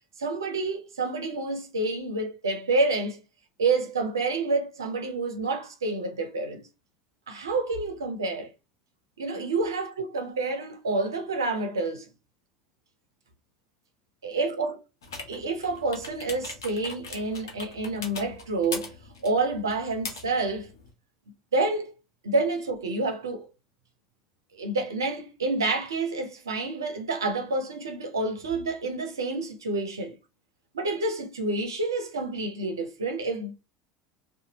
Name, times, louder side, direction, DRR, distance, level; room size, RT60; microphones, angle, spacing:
voice 1, 0.2-3.2 3.6-6.7 7.3-8.5 9.2-12.1 14.2-14.8 15.3-18.9 19.2-20.7 21.5-21.9 22.2-23.5 24.5-30.1 30.7-33.5, right 3 dB, 85° right, 0.6 m, -28 dB
sound 1, 15.0-20.9, left 4 dB, 80° left, 0.8 m, -41 dB
2.6 x 2.3 x 2.8 m
figure-of-eight pair, 70°, 2 cm